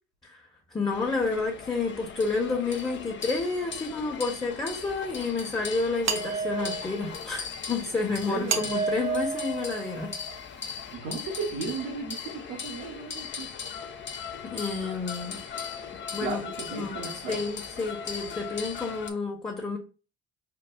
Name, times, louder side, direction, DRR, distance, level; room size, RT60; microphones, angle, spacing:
voice 1, 0.7-10.1 14.4-15.4 16.1-16.5 16.7-19.8, left 4 dB, 15° left, 1.0 m, -30 dB
sound 1, 0.9-19.1, left 6 dB, 35° left, 0.6 m, -39 dB
sound 2, 6.0-7.1 8.5-10.4, right 5 dB, 55° right, 0.9 m, -31 dB
voice 2, 8.0-8.7 10.9-13.5 16.2-17.4, right 4 dB, 85° right, 1.1 m, -35 dB
4.7 x 2.3 x 2.3 m
supercardioid pair, 70°, 33 cm